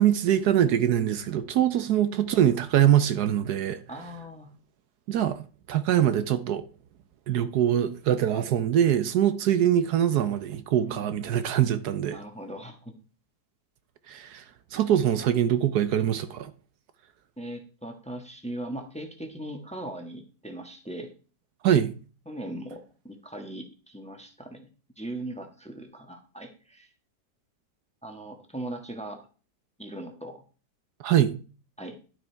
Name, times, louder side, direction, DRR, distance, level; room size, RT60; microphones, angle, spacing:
voice 1, 0.0-3.8 5.1-6.6 7.3-12.2 14.1-14.4 14.7-16.5 21.6-21.9 31.0-31.4, right 10 dB, 70° right, 1.2 m, -23 dB
voice 2, 3.9-4.5 10.8-11.3 12.0-12.9 17.4-21.1 22.2-24.7 25.0-26.9 28.0-29.3 29.8-30.4 31.8-31.9, right 1 dB, 5° left, 1.2 m, -39 dB
11.5 x 6.6 x 4.5 m
omnidirectional pair, 1.8 m